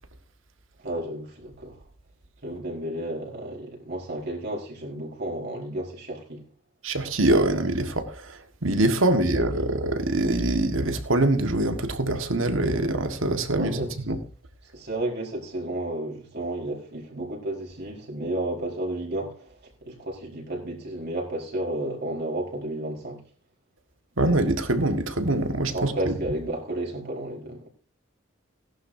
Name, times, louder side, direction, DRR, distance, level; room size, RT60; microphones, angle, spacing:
voice 1, 0.8-1.7 2.4-6.4 9.0-9.7 13.5-13.9 14.7-23.2 25.7-27.7, right 1 dB, 55° right, 4.6 m, -32 dB
voice 2, 6.8-8.3 8.6-14.2 24.2-26.1, right 1 dB, 80° right, 1.7 m, -24 dB
18.0 x 11.5 x 2.7 m
head